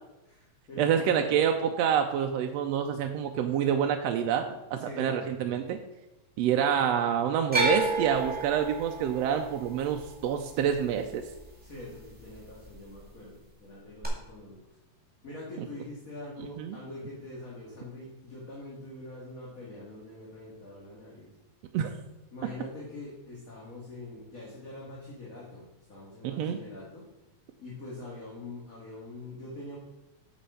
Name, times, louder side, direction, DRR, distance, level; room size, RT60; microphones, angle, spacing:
voice 1, 0.3-1.3 4.8-5.4 11.6-14.6 15.2-21.3 22.3-27.1 27.6-29.8, left 2 dB, 35° left, -5 dB, 1.9 m, -44 dB
voice 2, 0.8-4.4 4.7-5.8 6.4-11.2 15.6-15.7 16.6-16.8 21.7-21.9 26.2-26.6, right 8 dB, 75° right, 4 dB, 1.6 m, -27 dB
sound 1, 7.5-11.7 12.0-12.7 14.0-14.1, right 2 dB, 5° right, 1.8 m, -31 dB
8.4 x 6.2 x 5.8 m, 0.92 s
omnidirectional pair, 3.3 m